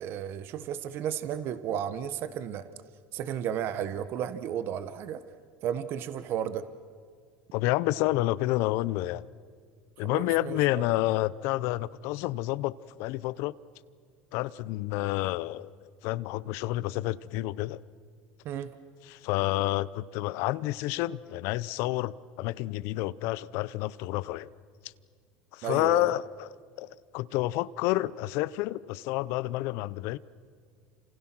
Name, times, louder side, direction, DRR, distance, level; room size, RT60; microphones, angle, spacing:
voice 1, 0.0-2.7 3.1-5.2 5.6-6.6 10.0-10.8 18.4-18.7 25.6-26.1, right 9 dB, 55° right, 1.2 m, -33 dB
voice 2, 7.5-9.2 10.0-13.5 14.3-15.7 16.0-17.8 19.1-24.5 25.5-26.9 27.1-30.2, left 17 dB, 65° left, 0.7 m, -29 dB
29.5 x 27.0 x 6.1 m
supercardioid pair, 105°, 5 cm